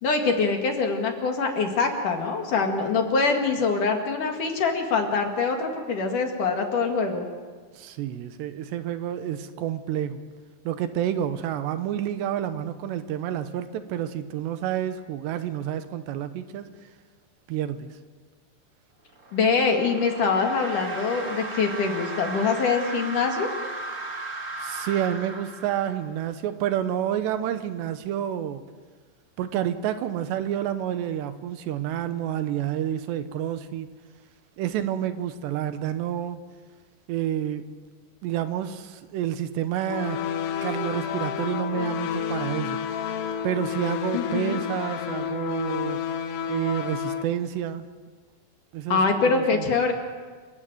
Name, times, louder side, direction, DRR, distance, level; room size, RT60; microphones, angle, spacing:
voice 1, 0.0-7.3 19.3-23.5 44.1-44.6 48.9-49.9, left 4 dB, 55° left, 3 dB, 3.1 m, -24 dB
voice 2, 7.7-10.2 10.6-16.7 17.5-18.0 24.6-28.6 29.4-33.9 34.6-36.4 37.1-37.7 38.2-40.2 40.6-42.8 43.4-46.0 46.5-47.9 48.7-49.7, right 10 dB, 75° right, 10 dB, 3.0 m, -29 dB
sound 1, 19.1-26.2, right 2 dB, 40° right, 1.0 m, -36 dB
sound 2, 39.9-47.2, left 8 dB, 70° left, 3.3 m, -30 dB
28.5 x 15.5 x 9.2 m, 1.5 s
omnidirectional pair, 5.2 m